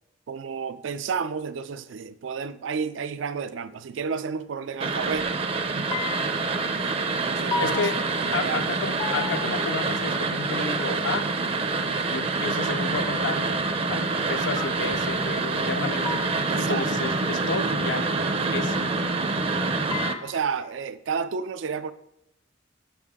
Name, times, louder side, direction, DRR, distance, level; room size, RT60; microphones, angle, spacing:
voice 1, 0.3-5.4 5.7-5.8 6.7-6.9 7.2-7.9 8.1-8.7 16.5-16.9 20.2-21.9, right 6 dB, 90° right, 13 dB, 0.4 m, -31 dB
sound 1, 4.8-20.1, right 3 dB, 30° right, 0.5 m, -26 dB
sound 2, 5.9-6.7 7.5-8.7 9.0-10.0 12.9-13.6 14.6-15.3 16.0-16.7 19.9-20.7, left 6 dB, 25° left, 0.4 m, -35 dB
voice 2, 7.6-8.0 8.3-11.3 12.1-13.5 13.9-16.2 16.6-18.1 18.5-18.9, left 4 dB, 80° left, 8 dB, 0.5 m, -31 dB
sound 3, 12.8-19.1, right 1 dB, 65° right, 0.8 m, -40 dB
7.1 x 6.4 x 3.6 m, 0.77 s
head